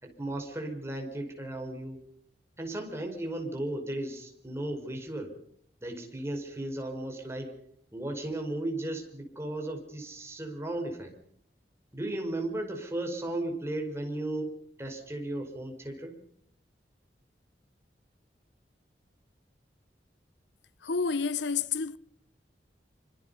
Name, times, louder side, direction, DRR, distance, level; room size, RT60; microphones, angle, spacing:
voice 1, 0.0-2.0 2.6-5.3 5.8-7.5 7.9-11.1 11.9-16.1, right 1 dB, 15° right, 5.1 m, -35 dB
voice 2, 20.8-22.0, left 5 dB, 85° left, 0.9 m, -29 dB
26.5 x 25.5 x 5.6 m
head